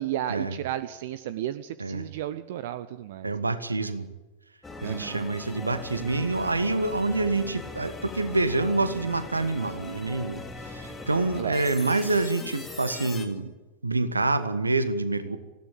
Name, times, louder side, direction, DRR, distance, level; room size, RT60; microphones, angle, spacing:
voice 1, 0.0-3.3 4.8-5.2 11.4-11.6, right 12 dB, 55° right, 14 dB, 0.8 m, -33 dB
voice 2, 3.2-4.1 4.8-13.5 13.8-15.4, right 2 dB, 80° right, 12 dB, 1.5 m, -27 dB
sound 1, 4.6-13.3, left 3 dB, 10° left, 3.4 m, -40 dB
20.0 x 16.0 x 9.0 m, 1.2 s
figure-of-eight pair, 90°, 0 cm